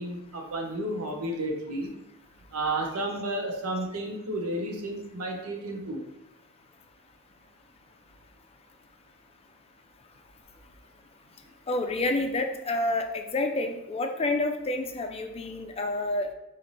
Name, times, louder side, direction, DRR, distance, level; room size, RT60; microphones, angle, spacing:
voice 1, 0.0-1.9 2.5-6.0, right 1 dB, 85° right, 2 dB, 0.9 m, -32 dB
voice 2, 11.7-16.3, left 2 dB, 30° left, 5 dB, 0.4 m, -29 dB
4.2 x 3.2 x 4.0 m, 0.89 s
head